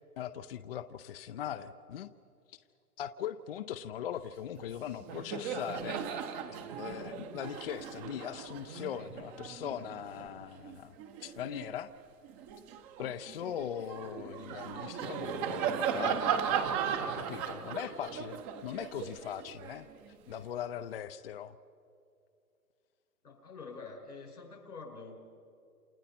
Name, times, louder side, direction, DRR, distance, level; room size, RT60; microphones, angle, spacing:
voice 1, 0.2-2.1 2.5-2.6 3.0-6.0 6.8-11.9 13.0-16.3 17.1-19.9 20.3-21.6, left 9 dB, 40° left, 10 dB, 0.6 m, -40 dB
Laughter, 4.6-4.7 5.0-11.7 12.2-20.4, right 7 dB, 15° right, 0.8 m, -37 dB
voice 2, 23.2-25.2, left 4 dB, 85° left, 1 dB, 6.0 m, -46 dB
29.0 x 27.0 x 4.3 m, 2.6 s
hypercardioid pair, 145°, 45 cm